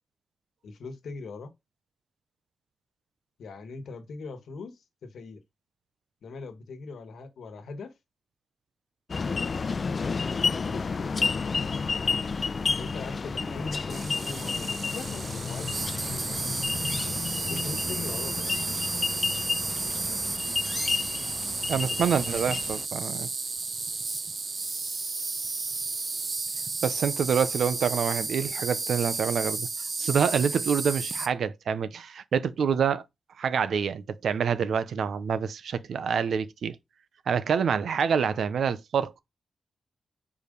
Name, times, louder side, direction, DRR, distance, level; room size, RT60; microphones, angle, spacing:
voice 1, 0.6-1.5 3.4-5.4 6.2-7.9 9.5-11.4 12.8-16.5 17.5-18.4 21.7-22.6, left 4 dB, 85° left, 1.4 m, -41 dB
sound 1, 9.1-22.8, left 4 dB, 45° left, 0.3 m, -31 dB
Insect, 13.9-31.3, right 3 dB, 40° right, 0.8 m, -32 dB
voice 2, 21.7-23.3 26.8-29.7 30.0-33.0 33.4-36.8 37.3-39.2, right 7 dB, 80° right, 0.7 m, -27 dB
5.1 x 4.8 x 5.2 m
wide cardioid pair, 110°, 0 cm